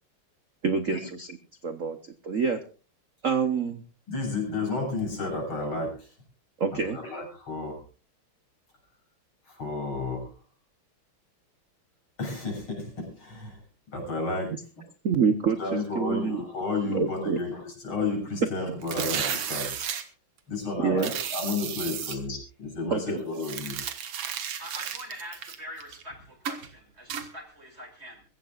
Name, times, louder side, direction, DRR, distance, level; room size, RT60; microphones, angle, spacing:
voice 1, 0.6-1.4 1.6-2.6 3.2-3.8 6.6-7.0 15.0-16.4 16.9-17.4 20.8-21.1 22.1-22.2 22.9-23.2, right 5 dB, 50° right, 1.0 m, -27 dB
voice 2, 4.1-6.1 6.7-7.8 9.5-10.3 12.2-13.6 13.9-14.5 15.6-19.8 20.5-23.8, left 3 dB, 70° left, 7.6 m, -32 dB
sound 1, 18.8-20.0 21.0-22.2 23.4-26.0 26.5-26.7 27.1-27.3, right 8 dB, 85° right, 2.4 m, -33 dB
voice 3, 24.6-28.2, equal, 30° right, 2.9 m, -43 dB
24.0 x 15.0 x 2.4 m
omnidirectional pair, 2.4 m